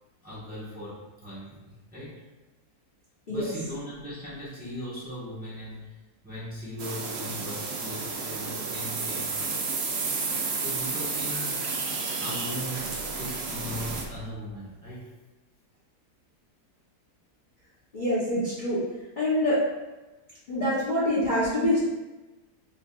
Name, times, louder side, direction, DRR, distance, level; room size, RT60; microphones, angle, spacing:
voice 1, 0.2-2.1 3.3-6.0 6.2-9.4 10.6-11.6 12.2-15.1, equal, 5° right, -9 dB, 1.0 m, -38 dB
sound 1, 6.8-14.0, right 4 dB, 80° right, 0.6 m, -31 dB
voice 2, 17.9-18.8 19.2-19.7 20.5-21.8, left 1 dB, 40° left, -10 dB, 0.8 m, -25 dB
5.4 x 2.4 x 2.3 m, 1.1 s
omnidirectional pair, 1.7 m